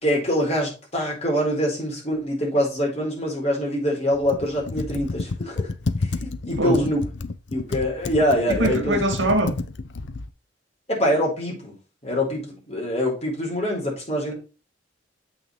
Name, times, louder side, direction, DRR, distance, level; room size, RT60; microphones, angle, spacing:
voice 1, 0.0-5.7 6.2-7.1 7.5-9.0 10.9-11.8 12.0-14.3, equal, 35° left, 4.3 m, -24 dB
Computer keyboard, 4.1-10.3, left 3 dB, 70° left, 0.6 m, -30 dB
voice 2, 6.6-6.9 8.5-9.6, right 1 dB, 85° right, 2.2 m, -22 dB
7.7 x 6.3 x 3.3 m
head